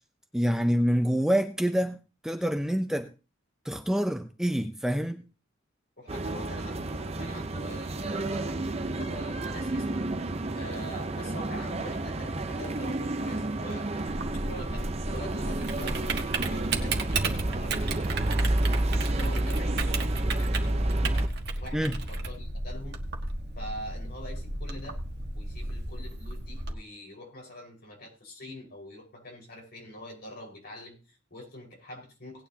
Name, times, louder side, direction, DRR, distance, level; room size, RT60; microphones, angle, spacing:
voice 1, 0.3-2.0 2.2-3.1 3.6-5.2 21.7-22.0, equal, 5° right, 0.6 m, -26 dB
voice 2, 6.0-14.1 14.3-18.5 19.1-19.9 20.2-23.0 23.6-25.0 25.3-32.5, left 1 dB, 55° left, 5.1 m, -45 dB
sound 1, 6.1-21.3, right 2 dB, 30° right, 0.8 m, -30 dB
Typing, 14.1-26.7, right 2 dB, 55° right, 1.5 m, -34 dB
18.5 x 9.4 x 2.9 m
head